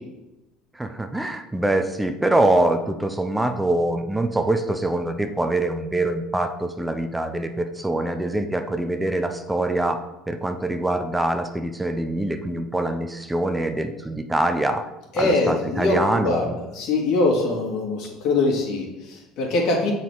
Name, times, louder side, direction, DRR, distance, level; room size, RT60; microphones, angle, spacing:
voice 1, 0.7-14.9 15.2-16.5, right 1 dB, 10° right, 7 dB, 0.5 m, -24 dB
voice 2, 15.1-19.9, left 2 dB, 65° left, -1 dB, 2.0 m, -23 dB
6.9 x 4.1 x 4.6 m, 0.97 s
supercardioid pair, 90°, 0 cm